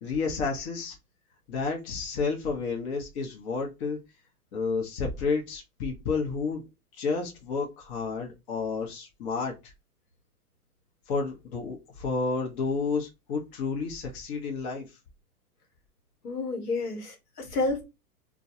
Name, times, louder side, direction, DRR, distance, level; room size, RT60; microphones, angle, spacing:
voice 1, 0.0-1.0 1.5-4.0 4.5-6.6 6.9-9.7 11.1-15.0, left 4 dB, 45° left, 0.8 m, -31 dB
voice 2, 16.2-17.8, left 3 dB, 90° left, 1.0 m, -30 dB
2.2 x 2.2 x 2.7 m
hypercardioid pair, 125°, 45 cm